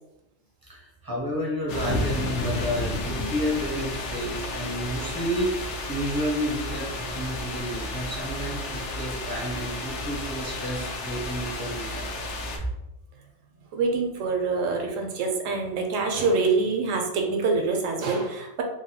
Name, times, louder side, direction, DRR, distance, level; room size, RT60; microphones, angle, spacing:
voice 1, 0.7-12.1, equal, 30° right, -4 dB, 0.4 m, -31 dB
sound 1, 1.7-12.6, left 2 dB, 70° left, 0.8 m, -32 dB
voice 2, 13.7-18.6, right 4 dB, 80° right, 3 dB, 1.0 m, -25 dB
3.2 x 2.2 x 2.7 m, 0.92 s
omnidirectional pair, 1.3 m